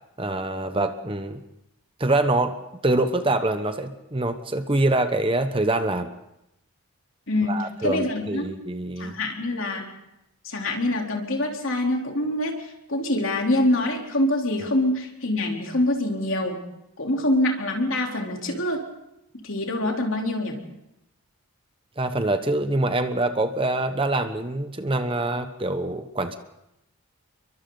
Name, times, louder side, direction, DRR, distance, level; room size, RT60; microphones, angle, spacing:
voice 1, 0.2-1.4 2.0-2.6 2.8-6.1 7.5-9.2 22.0-26.4, right 2 dB, 25° right, 8 dB, 1.0 m, -25 dB
voice 2, 7.3-8.5 9.0-9.9 10.4-16.6 17.0-18.9 19.4-20.6, left 1 dB, 60° left, 1 dB, 3.6 m, -25 dB
30.0 x 23.0 x 4.0 m, 0.85 s
head